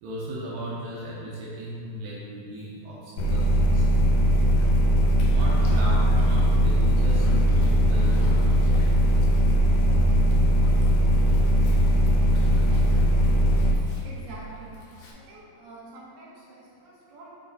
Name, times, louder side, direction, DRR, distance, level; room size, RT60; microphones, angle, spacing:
voice 1, 0.0-3.9 5.3-7.3 7.6-8.2 13.2-13.3 13.6-13.7, right 1 dB, 80° right, -6 dB, 2.5 m, -36 dB
sound 1, 3.2-13.7, equal, 85° left, 2.5 m, -20 dB
Dog, 4.6-15.1, left 2 dB, 70° left, 2.0 m, -44 dB
voice 2, 14.0-14.8 15.1-17.3, right 2 dB, 60° right, -6 dB, 2.5 m, -46 dB
7.3 x 4.1 x 4.0 m, 2.6 s
omnidirectional pair, 4.0 m